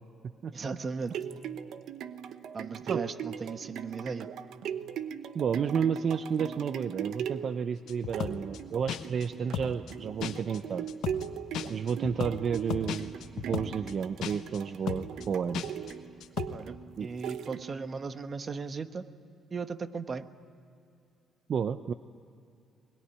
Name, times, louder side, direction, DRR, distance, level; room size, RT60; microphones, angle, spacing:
voice 1, 0.5-1.2 2.5-4.3 16.5-19.1 19.5-20.3, right 4 dB, 40° right, 10 dB, 1.2 m, -37 dB
sound 1, 0.8-18.0 18.5-18.6, right 9 dB, 80° right, 1.0 m, -40 dB
voice 2, 5.3-10.9 11.7-15.7 17.0-17.1 21.5-21.9, right 7 dB, 55° right, 11 dB, 0.7 m, -31 dB
sound 2, 7.9-8.6 8.9-9.3 9.5-9.9 10.2-10.6 10.9-11.3 11.5-13.9 14.2-14.6 14.9-15.3 15.5-15.9 16.2-16.5, left 10 dB, 85° left, 1.3 m, -35 dB
22.0 x 21.0 x 9.9 m, 2.5 s
cardioid pair, 90°, 0 cm